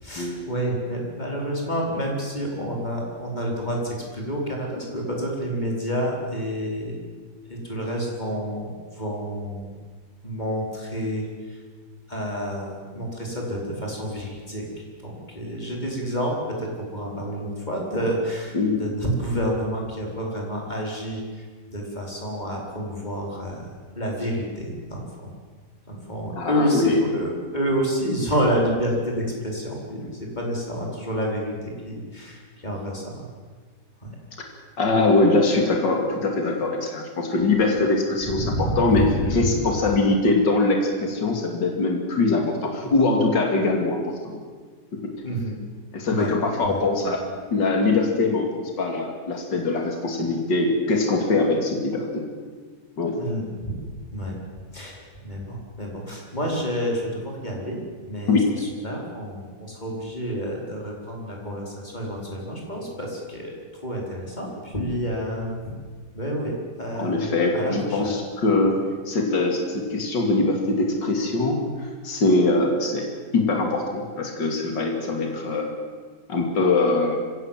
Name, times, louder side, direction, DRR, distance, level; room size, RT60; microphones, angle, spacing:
voice 1, 0.0-6.9 7.5-8.7 8.9-9.7 10.2-11.6 12.1-14.7 15.0-25.3 25.9-33.2 34.0-34.2 38.4-39.5 45.2-45.6 46.1-46.3 46.6-46.8 53.2-53.7 54.1-54.3 54.7-57.8 58.1-65.6 66.1-67.3 67.5-68.2, equal, 20° left, -1 dB, 5.0 m, -29 dB
voice 2, 18.5-18.9 26.3-27.0 34.8-44.0 44.2-44.4 45.9-47.2 47.5-52.2 53.0-53.2 58.3-58.5 67.0-68.8 69.1-71.6 72.0-73.0 73.3-75.7 76.3-77.2, left 3 dB, 70° left, 2 dB, 3.3 m, -22 dB
24.0 x 17.0 x 7.6 m, 1.5 s
omnidirectional pair, 2.0 m